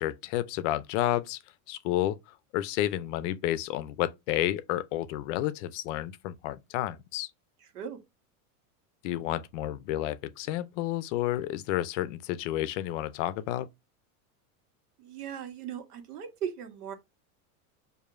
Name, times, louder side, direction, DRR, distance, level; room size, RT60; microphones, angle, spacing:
voice 1, 0.0-1.4 1.7-7.3 9.0-13.7, left 13 dB, 55° left, 0.5 m, -31 dB
voice 2, 7.6-8.0 15.0-16.9, right 8 dB, 85° right, 1.3 m, -38 dB
4.7 x 2.7 x 2.5 m
supercardioid pair, 130°, 45 cm